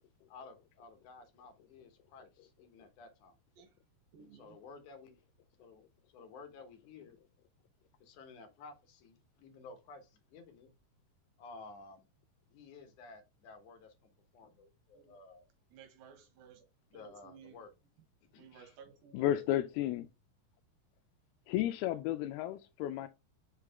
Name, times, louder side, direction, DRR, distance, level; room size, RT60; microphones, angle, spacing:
voice 1, 0.3-3.4 4.4-5.2 5.6-5.8 6.1-7.2 8.0-10.7 11.4-12.1 12.5-13.9 14.3-15.5 16.9-17.7 18.3-18.7, left 4 dB, 65° left, 2.3 m, -53 dB
voice 2, 4.1-4.7 14.9-15.2 15.7-16.6 16.9-17.7 18.4-19.5, right 7 dB, 75° right, 2.8 m, -57 dB
voice 3, 19.1-20.1 21.5-23.1, left 13 dB, 90° left, 2.5 m, -32 dB
5.9 x 4.9 x 3.5 m
omnidirectional pair, 4.4 m